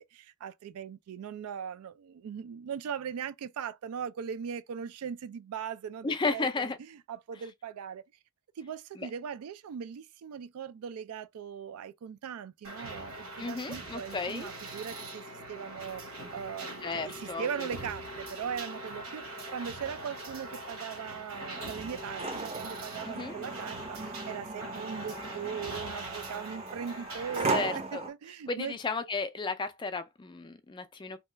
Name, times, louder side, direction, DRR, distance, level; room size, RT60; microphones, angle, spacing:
voice 1, 0.0-8.0 8.6-28.8, right 7 dB, 85° right, 0.3 m, -39 dB
voice 2, 6.0-6.8 9.0-9.1 13.4-14.5 16.8-17.7 23.1-23.4 27.5-28.1 28.5-31.2, left 4 dB, 20° left, 0.3 m, -34 dB
sound 1, 12.6-27.4, right 1 dB, 65° right, 1.0 m, -42 dB
sound 2, 21.3-28.1, right 3 dB, 30° right, 0.6 m, -37 dB
2.8 x 2.3 x 3.2 m
head